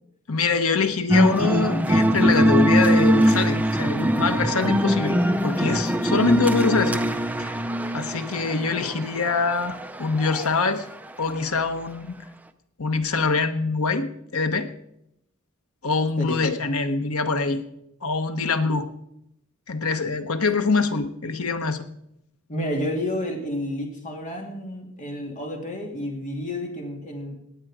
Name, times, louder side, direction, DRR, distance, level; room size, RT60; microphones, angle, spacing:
voice 1, 0.3-7.0 7.4-7.6 7.9-10.9 11.2-12.2 12.8-14.7 15.8-17.6 18.0-18.9 19.7-21.9, left 4 dB, 85° left, 8 dB, 1.2 m, -24 dB
sound 1, 1.1-10.6, equal, 10° right, 0.6 m, -22 dB
voice 2, 22.5-27.4, left 1 dB, 35° left, 1 dB, 2.8 m, -30 dB
18.5 x 9.0 x 5.0 m, 0.80 s
head